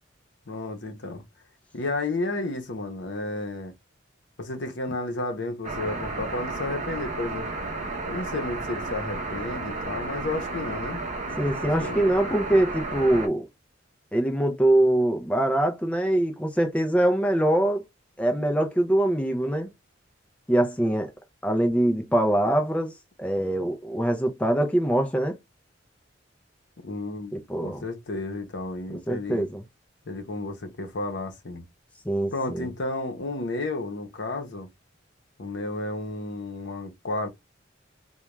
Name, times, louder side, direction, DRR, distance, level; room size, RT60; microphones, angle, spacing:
voice 1, 0.5-1.2 1.7-3.7 4.4-7.5 8.1-11.0 11.8-12.1 26.8-27.3 27.6-29.5 30.1-31.6 32.3-34.7 35.4-37.3, left 2 dB, 65° left, 0.7 m, -32 dB
sound 1, 5.6-13.3, right 2 dB, 40° right, 0.6 m, -32 dB
voice 2, 11.4-13.5 14.1-17.8 18.2-19.7 20.5-21.1 21.4-22.9 23.2-25.4 27.3-27.8 29.1-29.6 32.1-32.7, right 1 dB, 5° left, 0.4 m, -23 dB
2.3 x 2.2 x 3.0 m
head